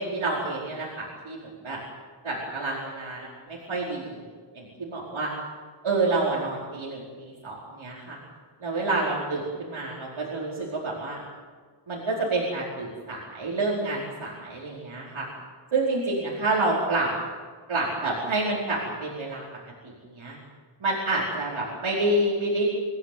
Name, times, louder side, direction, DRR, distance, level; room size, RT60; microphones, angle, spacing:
voice 1, 0.0-1.8 2.2-4.2 4.5-5.3 5.8-8.2 8.6-11.2 11.9-15.3 15.7-17.1 17.7-19.4 19.8-20.4 20.8-22.7, right 2 dB, 80° right, -5 dB, 4.9 m, -28 dB
25.0 x 16.0 x 9.3 m, 1.5 s
wide cardioid pair, 110°, 48 cm